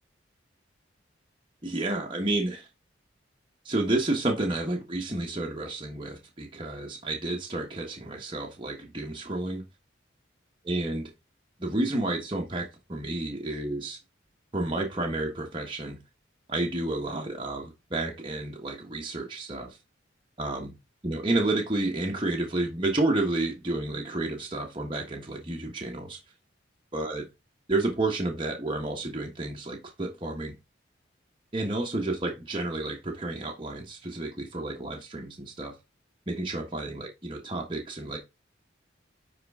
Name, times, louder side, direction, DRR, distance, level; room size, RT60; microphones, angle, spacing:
voice 1, 1.6-2.7 3.6-9.6 10.7-11.1 11.6-14.0 14.5-16.0 16.5-19.8 20.4-20.7 21.0-26.2 26.9-27.3 27.7-30.6 31.5-35.8 36.3-38.2, right 2 dB, 25° right, 1.3 m, -30 dB
9.6 x 3.8 x 3.6 m
head